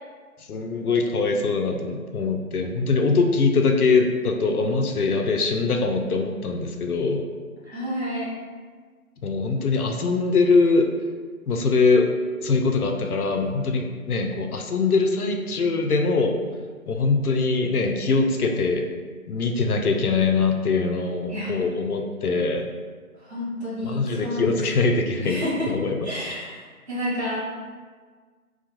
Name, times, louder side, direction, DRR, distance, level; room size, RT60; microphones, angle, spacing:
voice 1, 0.5-7.2 9.2-10.9 11.5-12.1 12.4-16.3 16.9-18.9 19.3-22.7 23.8-25.4 25.7-26.0, left 4 dB, 85° left, 3 dB, 0.5 m, -22 dB
voice 2, 7.7-8.3 21.3-21.5 23.2-24.6 25.2-25.7 26.0-27.4, left 1 dB, 45° right, -8 dB, 0.9 m, -30 dB
2.4 x 2.2 x 2.8 m, 1.5 s
figure-of-eight pair, 175°, 44 cm